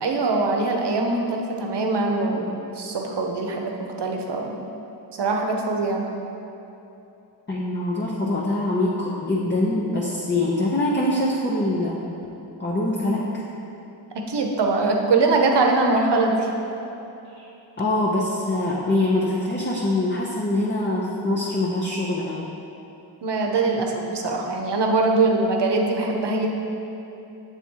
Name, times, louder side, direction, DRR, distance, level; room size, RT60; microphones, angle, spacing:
voice 1, 0.0-3.7 4.0-4.6 5.2-6.0 14.1-16.5 23.2-26.5, right 3 dB, 60° right, 1 dB, 0.8 m, -22 dB
voice 2, 7.5-12.0 12.6-13.4 17.3-17.4 17.8-22.5, left 1 dB, 25° left, -5 dB, 0.7 m, -24 dB
7.0 x 3.5 x 4.5 m, 2.9 s
cardioid pair, 45°, 47 cm